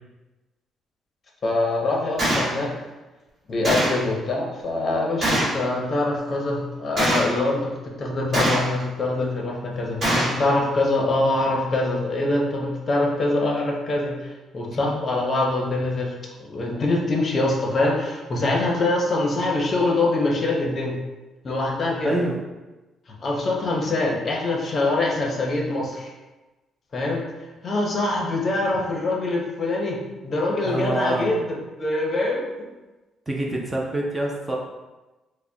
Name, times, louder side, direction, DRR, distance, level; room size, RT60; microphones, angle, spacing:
voice 1, 1.4-2.7 3.5-16.1 16.4-21.0 21.4-22.1 23.2-26.1 26.9-27.2 27.6-32.5, left 2 dB, 35° left, -1 dB, 0.6 m, -24 dB
Gunshot gunfire, 2.2-2.5 3.6-4.0 5.2-5.6 7.0-7.4 8.3-8.8 10.0-10.4, right 1 dB, 35° right, 1.2 m, -22 dB
voice 2, 22.0-22.4 30.6-31.3 33.3-34.6, right 1 dB, 15° right, -2 dB, 0.4 m, -26 dB
4.8 x 2.0 x 2.6 m, 1.1 s
cardioid pair, 140°, 0 cm